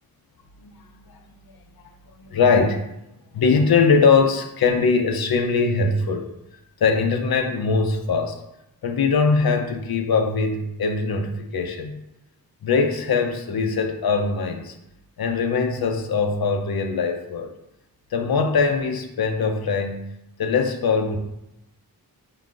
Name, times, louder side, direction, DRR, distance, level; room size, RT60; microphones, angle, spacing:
voice 1, 2.2-2.9 3.3-6.3 6.8-8.4 8.8-12.0 12.6-14.7 15.2-17.5 18.1-20.1 20.4-21.2, left 4 dB, 75° left, 5 dB, 0.6 m, -21 dB
5.5 x 4.0 x 2.5 m, 0.86 s
wide cardioid pair, 90°, 37 cm